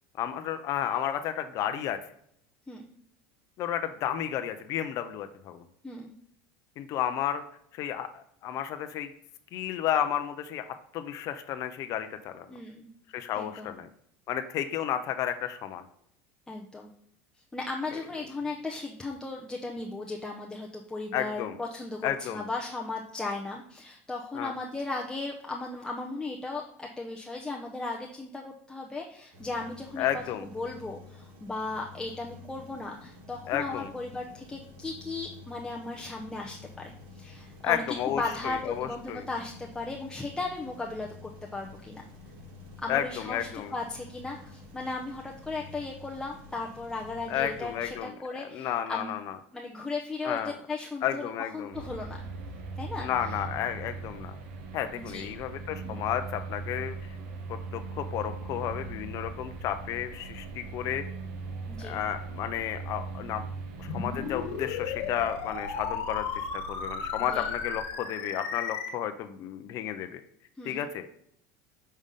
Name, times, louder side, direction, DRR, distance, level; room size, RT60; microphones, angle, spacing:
voice 1, 0.2-2.0 3.6-5.6 6.8-7.4 7.7-9.1 9.5-10.6 10.9-12.5 13.1-13.9 14.3-15.8 21.1-21.6 22.0-22.4 24.3-24.5 30.0-30.5 33.5-33.9 37.6-39.3 42.9-43.7 47.3-48.1 48.5-49.4 50.2-50.6 51.0-51.7 53.0-54.3 54.7-57.2 57.7-61.0 61.8-63.4 63.8-70.2 70.6-71.1, left 10 dB, 50° left, 8 dB, 0.5 m, -32 dB
voice 2, 12.5-12.9 13.4-13.8 16.5-16.9 17.5-42.1 42.8-49.1 49.5-52.2 52.8-53.3 54.9-55.3 55.8-56.1 61.7-62.0 67.3-67.4 70.6-70.9, left 3 dB, 10° left, -1 dB, 0.6 m, -36 dB
sound 1, 29.3-48.0, left 3 dB, 60° right, 2.4 m, -49 dB
sound 2, 51.7-67.8, right 3 dB, 80° right, 1.1 m, -40 dB
sound 3, 63.9-68.9, left 6 dB, 75° left, 1.2 m, -35 dB
5.4 x 3.5 x 5.1 m, 0.71 s
supercardioid pair, 115°, 7 cm